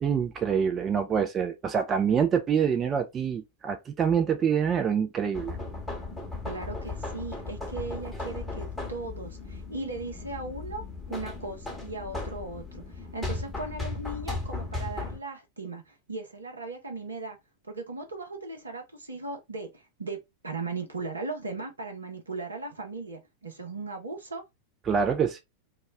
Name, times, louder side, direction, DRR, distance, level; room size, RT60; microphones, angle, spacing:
voice 1, 0.0-5.6 24.9-25.4, right 7 dB, 25° right, 0.3 m, -26 dB
sound 1, 5.3-15.2, left 3 dB, 5° left, 0.9 m, -36 dB
voice 2, 6.5-17.4 17.6-20.2 20.4-24.4, right 3 dB, 75° right, 0.8 m, -37 dB
2.3 x 2.0 x 3.3 m
figure-of-eight pair, 90°, 0 cm